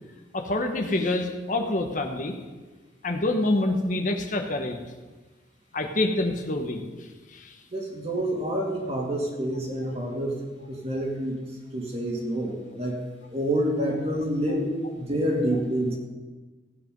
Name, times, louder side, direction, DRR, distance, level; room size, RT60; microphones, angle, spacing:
voice 1, 0.3-2.4 3.0-4.8 5.7-6.8 7.3-7.5, left 2 dB, 45° left, 4 dB, 1.2 m, -26 dB
voice 2, 7.7-11.4 11.7-13.0 13.3-16.0, right 1 dB, 35° right, 0 dB, 2.6 m, -28 dB
16.5 x 9.1 x 5.4 m, 1.3 s
head